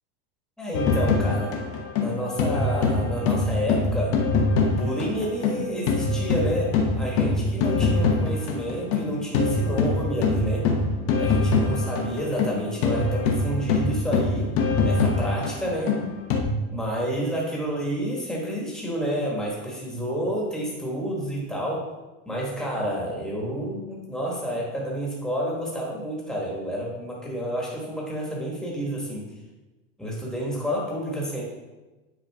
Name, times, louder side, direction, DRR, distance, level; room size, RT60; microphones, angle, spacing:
voice 1, 0.6-1.5 2.0-4.2 4.6-10.6 11.2-14.5 14.8-16.0 16.7-21.9 22.2-29.3 30.0-31.4, equal, ahead, -4 dB, 1.6 m, -29 dB
sound 1, 0.7-5.6 5.9-16.4, left 3 dB, 50° left, 1.1 m, -23 dB
9.5 x 4.7 x 3.6 m, 1.1 s
cardioid pair, 175°, 29 cm